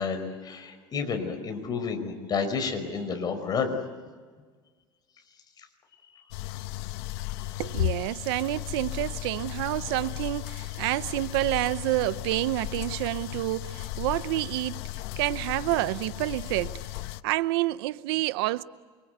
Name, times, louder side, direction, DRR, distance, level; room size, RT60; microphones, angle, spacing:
voice 1, 0.0-3.8 6.1-6.2, left 5 dB, 30° left, 5.1 m, -30 dB
sound 1, 6.3-17.2, left 16 dB, 80° left, 0.9 m, -35 dB
voice 2, 7.6-14.8 15.2-16.8 17.2-18.6, right 18 dB, 90° right, 0.8 m, -28 dB
28.5 x 25.0 x 8.0 m
cardioid pair, 135°, 13 cm